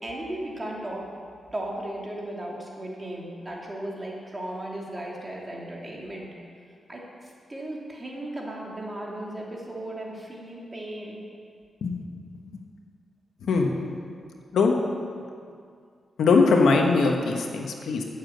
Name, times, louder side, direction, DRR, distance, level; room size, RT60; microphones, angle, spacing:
voice 1, 0.0-1.1 1.5-6.3 6.9-11.2, right 1 dB, 25° right, -2 dB, 2.6 m, -36 dB
voice 2, 13.4-13.7 14.5-14.8 16.2-18.0, left 4 dB, 85° left, 2 dB, 1.2 m, -21 dB
8.9 x 7.3 x 8.0 m, 2.3 s
cardioid pair, 70°, 0 cm